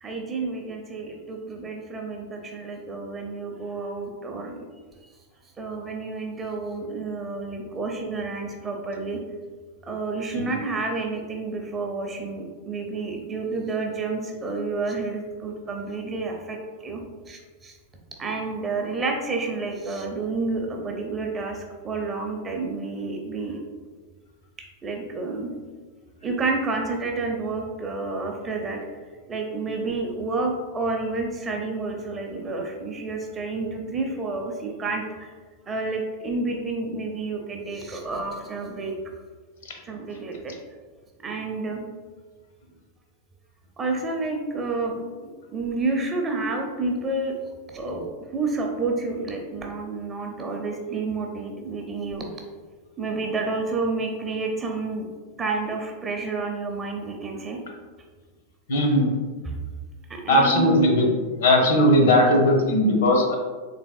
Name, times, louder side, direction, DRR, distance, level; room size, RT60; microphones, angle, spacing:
voice 1, 0.0-4.6 5.6-9.2 9.9-17.0 17.3-17.8 18.2-23.6 24.8-25.5 26.2-28.8 29.3-35.3 35.7-38.9 39.9-40.5 41.2-41.8 43.8-47.3 47.7-48.1 48.3-52.3 53.0-55.0 55.4-57.6 59.4-59.6 60.1-60.9, right 3 dB, 20° right, 1 dB, 0.5 m, -29 dB
voice 2, 58.7-59.1 60.3-61.1 61.4-63.4, left 1 dB, 60° left, 1 dB, 0.7 m, -18 dB
3.4 x 3.3 x 2.3 m, 1.4 s
figure-of-eight pair, 90°, 0 cm